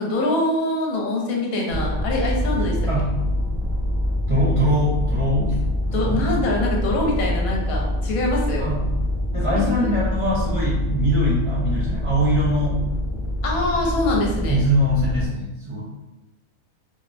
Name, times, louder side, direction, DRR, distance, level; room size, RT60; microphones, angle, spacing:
voice 1, 0.0-2.9 5.9-8.7 9.5-9.9 13.4-14.6, left 1 dB, 75° left, -2 dB, 1.0 m, -24 dB
sound 1, 1.7-15.3, equal, 15° left, 0.7 m, -25 dB
voice 2, 4.3-5.6 5.9-6.3 8.6-8.8 9.3-12.8 14.5-15.8, equal, 50° right, -8 dB, 0.4 m, -22 dB
2.6 x 2.0 x 2.4 m, 1.0 s
omnidirectional pair, 1.5 m